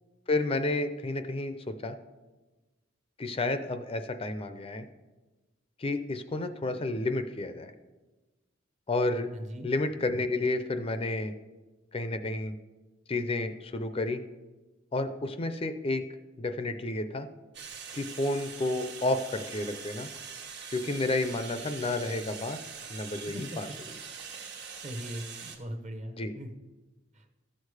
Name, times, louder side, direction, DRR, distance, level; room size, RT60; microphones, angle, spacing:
voice 1, 0.3-2.0 3.2-4.9 5.8-7.7 8.9-9.3 9.6-11.3 11.9-12.5 13.1-14.2 14.9-16.0 16.4-17.3 17.9-20.1 20.7-22.6 22.9-23.7 26.2-26.3, left 2 dB, 25° left, 9 dB, 0.5 m, -31 dB
voice 2, 9.3-9.7 23.3-23.6 24.8-26.5 27.1-27.2, equal, 35° right, 7 dB, 0.9 m, -40 dB
sound 1, 17.5-25.6, right 6 dB, 55° right, 1.2 m, -43 dB
14.5 x 6.5 x 4.8 m, 1.2 s
head